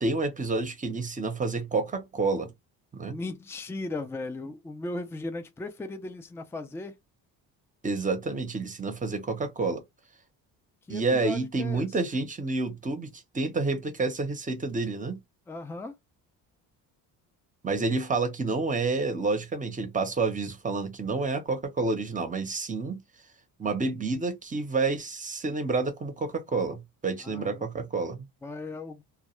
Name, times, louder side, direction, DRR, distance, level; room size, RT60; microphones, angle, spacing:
voice 1, 0.0-2.5 2.9-3.2 7.8-9.8 10.9-15.2 17.6-23.0 23.6-28.3, right 3 dB, 20° right, 0.7 m, -29 dB
voice 2, 3.1-6.9 10.9-11.9 15.5-15.9 27.2-27.6 28.4-29.0, left 2 dB, 5° left, 0.4 m, -37 dB
2.3 x 2.2 x 2.9 m
cardioid pair, 95°, 38 cm